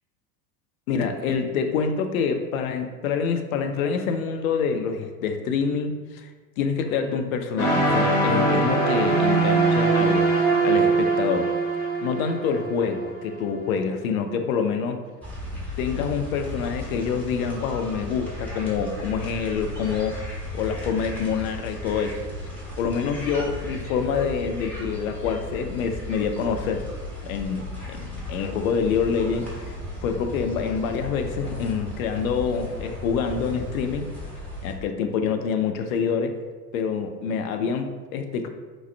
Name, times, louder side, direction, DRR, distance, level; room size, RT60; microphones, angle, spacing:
voice 1, 0.9-6.3 6.6-11.6 12.0-15.0 15.8-20.2 20.5-22.3 22.8-26.9 27.2-29.7 30.0-34.1 34.6-36.4 36.7-38.5, left 6 dB, 60° left, 6 dB, 0.5 m, -26 dB
sound 1, 7.6-13.5, right 3 dB, 45° left, 1.3 m, -22 dB
sound 2, 15.2-34.7, left 2 dB, 5° left, 0.9 m, -35 dB
3.5 x 2.0 x 3.2 m, 1.4 s
figure-of-eight pair, 85°, 48 cm